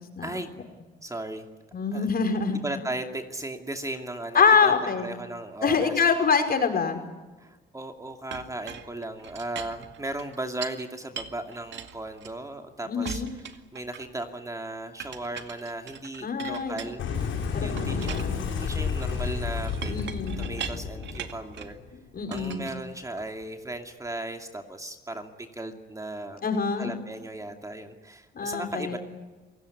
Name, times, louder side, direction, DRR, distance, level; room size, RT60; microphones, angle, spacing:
voice 1, 1.0-1.5 1.9-2.1 2.6-4.7 5.0-5.9 7.4-17.1 17.6-20.1 20.4-21.8 22.3-26.4 26.8-29.0, right 2 dB, 15° right, 5 dB, 2.5 m, -36 dB
voice 2, 1.7-2.6 4.3-5.1 5.6-7.0 12.9-13.3 16.2-16.8 17.5-18.4 19.9-20.4 22.1-22.7 26.4-26.9 28.4-29.0, left 5 dB, 50° left, 5 dB, 5.3 m, -25 dB
Chink clink, 8.3-10.8 11.2-12.6 13.0-14.3 15.0-17.3 17.8-21.8 22.3-23.5, right 7 dB, 65° right, 2.1 m, -41 dB
Boom, 17.0-22.2, left 6 dB, 80° left, 7.4 m, -31 dB
27.5 x 17.5 x 9.9 m, 1.2 s
cardioid pair, 90°, 20 cm